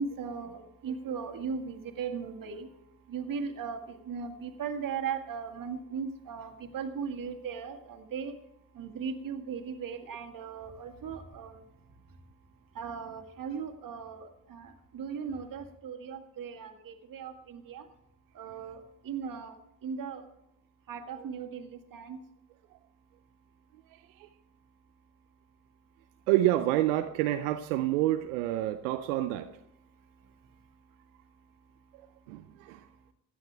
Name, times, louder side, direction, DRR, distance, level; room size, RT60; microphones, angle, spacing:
voice 1, 0.0-2.7 3.1-8.3 8.8-11.6 12.8-17.8 18.4-19.5 19.8-20.2 20.9-22.2, right 6 dB, 55° right, 6 dB, 1.9 m, -38 dB
voice 2, 23.9-24.3 26.3-29.6 32.3-32.9, right 14 dB, 90° right, 8 dB, 0.6 m, -28 dB
16.5 x 10.5 x 3.4 m, 0.81 s
hypercardioid pair, 60°, 39 cm